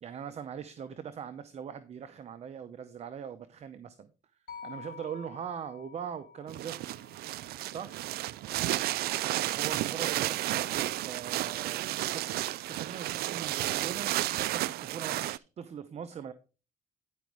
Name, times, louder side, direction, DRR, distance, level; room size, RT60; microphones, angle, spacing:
voice 1, 0.0-4.1 4.6-6.8 7.7-8.0 9.3-16.3, right 8 dB, 40° right, 11 dB, 0.7 m, -41 dB
sound 1, 4.5-8.7, left 6 dB, 60° left, 3.4 m, -50 dB
sound 2, 6.5-15.4, right 15 dB, 65° right, 0.4 m, -32 dB
10.5 x 5.1 x 4.6 m, 0.33 s
cardioid pair, 110°, 17 cm